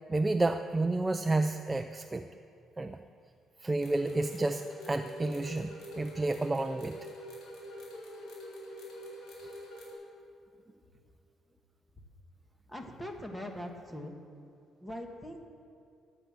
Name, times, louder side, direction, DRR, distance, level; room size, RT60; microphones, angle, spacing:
voice 1, 0.1-2.2 2.8-3.0 3.6-7.0, right 2 dB, 15° right, 7 dB, 0.4 m, -30 dB
sound 1, 3.8-9.9, equal, 80° left, 4.7 m, -45 dB
voice 2, 12.7-14.2 14.8-15.4, equal, 10° left, 3 dB, 1.5 m, -41 dB
14.5 x 10.0 x 7.5 m, 2.5 s
cardioid pair, 155°, 0 cm